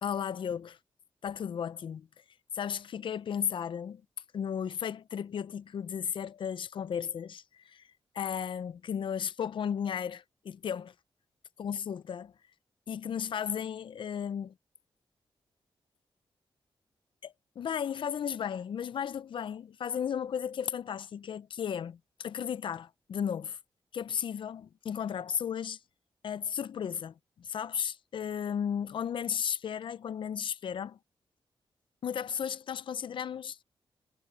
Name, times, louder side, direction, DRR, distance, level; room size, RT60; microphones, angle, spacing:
voice 1, 0.0-0.8 1.2-2.1 2.5-4.0 4.3-7.8 8.1-10.9 11.6-12.3 12.9-14.5 17.6-23.6 23.9-25.8 26.2-31.0 32.0-33.6, left 8 dB, 70° left, 0.5 m, -34 dB
cardioid pair, 95°, 9 cm